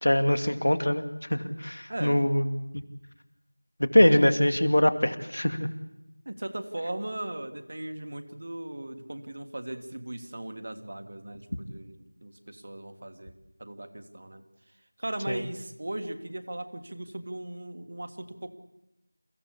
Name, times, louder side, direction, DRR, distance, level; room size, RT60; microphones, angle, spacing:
voice 1, 0.0-2.4 2.7-2.8 3.8-5.7 15.3-15.4, left 1 dB, 60° left, 8 dB, 2.3 m, -23 dB
voice 2, 1.9-2.3 6.2-14.4 15.0-18.5, right 1 dB, 30° right, 7 dB, 1.6 m, -38 dB
29.0 x 16.0 x 8.4 m, 0.94 s
figure-of-eight pair, 180°, 0 cm